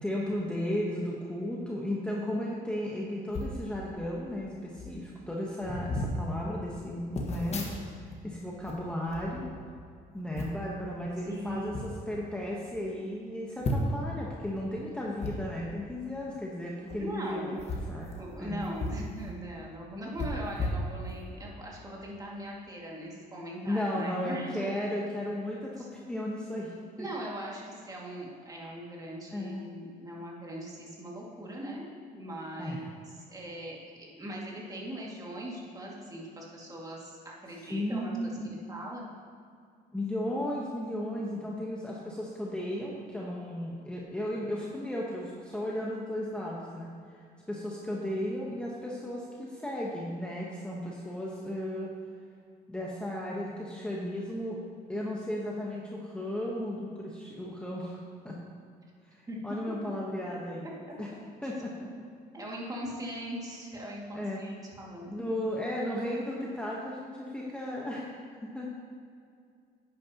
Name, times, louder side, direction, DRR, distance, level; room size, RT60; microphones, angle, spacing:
voice 1, 0.0-7.7 8.2-9.5 10.1-18.1 18.4-18.6 23.6-27.1 29.3-29.6 32.6-32.9 37.7-38.7 39.9-51.9 52.7-54.6 54.9-58.0 58.2-58.4 59.0-60.7 61.0-61.1 61.4-61.9 64.1-64.4 65.1-68.8, left 1 dB, 5° left, -4 dB, 1.1 m, -35 dB
sound 1, 3.3-3.6 4.4-4.5 4.7-5.0 5.6-6.2 7.1-8.2 8.5-9.9 10.4-10.7 11.5-11.9 12.4-12.5 12.7-12.8 13.6-14.1 15.2-15.3 16.8-17.0 17.5-19.1 19.4-19.5 20.2-21.4 21.9-22.0, left 1 dB, 40° left, 1.5 m, -35 dB
voice 2, 11.2-11.7 17.0-17.7 18.2-24.7 25.8-25.9 27.0-31.9 32.1-39.1 59.3-59.4 60.6-60.7 62.3-65.1, right 1 dB, 20° right, -3 dB, 2.2 m, -40 dB
11.0 x 9.3 x 3.0 m, 2.3 s
cardioid pair, 110°, 17 cm